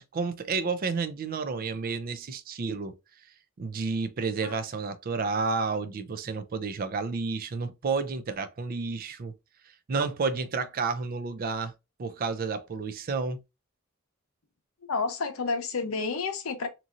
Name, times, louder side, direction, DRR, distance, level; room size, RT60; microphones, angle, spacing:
voice 1, 0.0-2.9 3.6-9.3 9.9-11.7 12.0-13.4, right 4 dB, 45° right, 0.4 m, -31 dB
voice 2, 14.9-16.7, left 4 dB, 80° left, 0.6 m, -30 dB
2.9 x 2.6 x 2.4 m
head